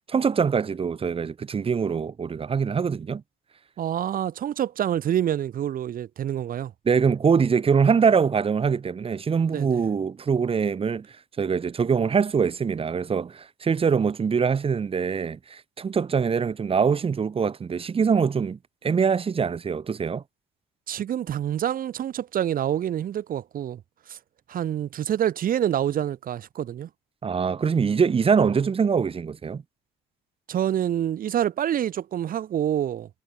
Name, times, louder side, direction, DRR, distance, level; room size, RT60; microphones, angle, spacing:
voice 1, 0.1-3.2 6.9-11.1 11.4-20.2 27.2-29.6, right 6 dB, 35° right, 3.9 m, -23 dB
voice 2, 3.8-6.7 9.5-9.9 20.9-23.8 24.1-24.2 24.5-26.9 30.5-33.1, right 10 dB, 55° right, 6.9 m, -27 dB
cardioid pair, 110°, 17 cm